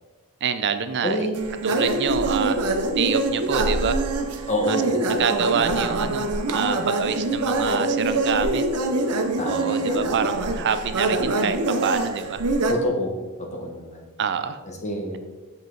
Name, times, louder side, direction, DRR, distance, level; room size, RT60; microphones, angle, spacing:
voice 1, 0.4-1.3 1.6-4.0 4.7-8.7 9.4-12.4 14.2-14.6, right 6 dB, 50° right, 10 dB, 0.4 m, -26 dB
voice 2, 1.0-1.6 4.5-5.2 9.4-10.1 12.7-13.1 13.4-14.0 14.7-15.2, equal, 30° left, 1 dB, 1.2 m, -27 dB
sound 1, 1.3-12.7, right 2 dB, 85° right, 0.8 m, -24 dB
7.2 x 5.4 x 3.9 m, 1.3 s
head